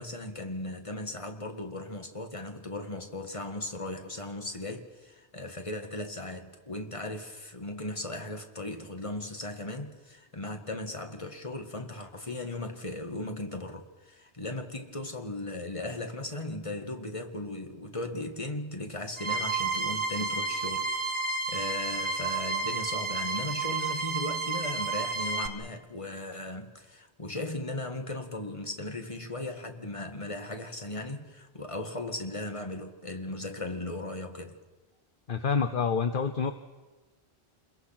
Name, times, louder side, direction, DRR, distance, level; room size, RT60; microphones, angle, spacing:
voice 1, 0.0-34.6, left 2 dB, 30° left, 1.9 m, -37 dB
sound 1, 19.2-25.5, right 4 dB, 30° right, 1.6 m, -31 dB
voice 2, 35.3-36.5, left 5 dB, 55° left, 1.1 m, -27 dB
28.5 x 21.5 x 5.9 m
omnidirectional pair, 1.1 m